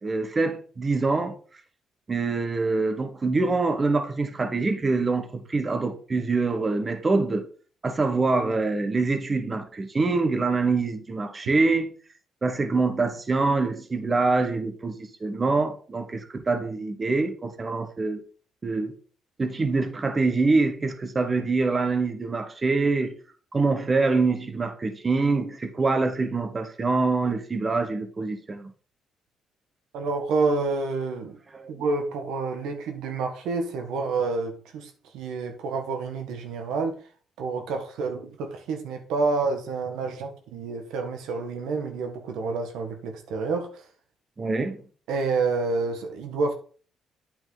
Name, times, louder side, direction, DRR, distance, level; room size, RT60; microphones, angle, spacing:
voice 1, 0.0-1.3 2.1-7.5 7.8-11.9 12.4-18.2 18.6-18.9 19.4-23.1 23.5-28.7 31.5-31.7 44.4-44.8, right 3 dB, 30° right, 1.3 m, -25 dB
voice 2, 29.9-31.4 31.7-36.9 37.4-43.8 45.1-46.5, right 4 dB, 90° right, 1.4 m, -28 dB
8.9 x 5.9 x 4.0 m
cardioid pair, 90°, 0 cm